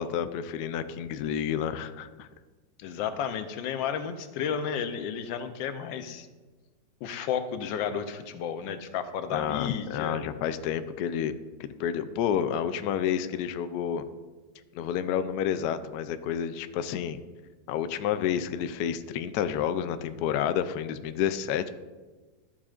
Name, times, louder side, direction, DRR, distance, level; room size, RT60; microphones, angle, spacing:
voice 1, 0.0-2.3 9.3-11.3 11.6-14.0 14.7-17.2 17.7-21.7, left 9 dB, 70° left, 11 dB, 0.9 m, -30 dB
voice 2, 2.8-6.3 7.0-10.2, left 7 dB, 85° left, 9 dB, 1.4 m, -32 dB
13.0 x 7.2 x 2.4 m, 1.3 s
omnidirectional pair, 2.0 m